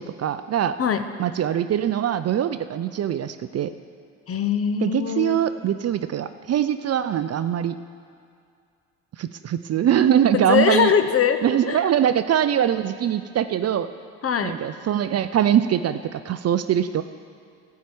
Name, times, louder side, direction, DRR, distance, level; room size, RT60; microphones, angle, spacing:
voice 1, 0.0-0.8 1.2-3.7 4.8-7.7 9.2-10.9 11.4-13.9 14.4-17.0, right 10 dB, 40° right, 11 dB, 0.5 m, -22 dB
voice 2, 4.3-5.4 10.3-11.4 11.7-11.8 14.2-14.6, left 7 dB, 35° left, 9 dB, 0.8 m, -21 dB
12.5 x 4.7 x 8.7 m, 2.3 s
hypercardioid pair, 60°, 38 cm